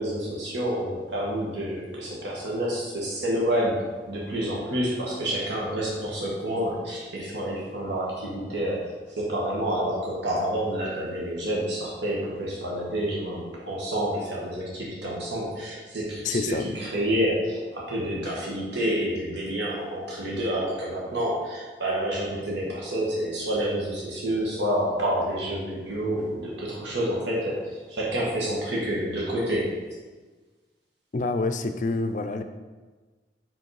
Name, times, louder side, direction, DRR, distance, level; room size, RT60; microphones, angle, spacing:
voice 1, 0.0-3.8 4.1-29.7, right 1 dB, 80° right, -4 dB, 1.5 m, -28 dB
voice 2, 16.2-16.7 31.1-32.4, left 3 dB, 45° left, 8 dB, 0.4 m, -27 dB
5.7 x 5.0 x 4.7 m, 1.3 s
head